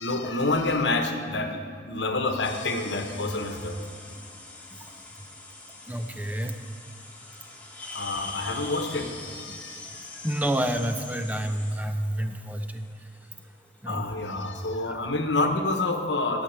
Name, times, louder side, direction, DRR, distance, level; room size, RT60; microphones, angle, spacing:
voice 1, 0.0-3.8 7.9-10.1 12.2-12.3 13.9-16.4, left 2 dB, 80° left, 5 dB, 1.1 m, -28 dB
sound 1, 2.4-13.8, left 2 dB, 10° left, 1.1 m, -43 dB
voice 2, 5.9-6.6 9.5-9.6 10.2-12.9 13.8-14.1 14.9-15.0, right 1 dB, 10° right, 7 dB, 0.5 m, -29 dB
12.0 x 5.9 x 7.3 m, 2.1 s
head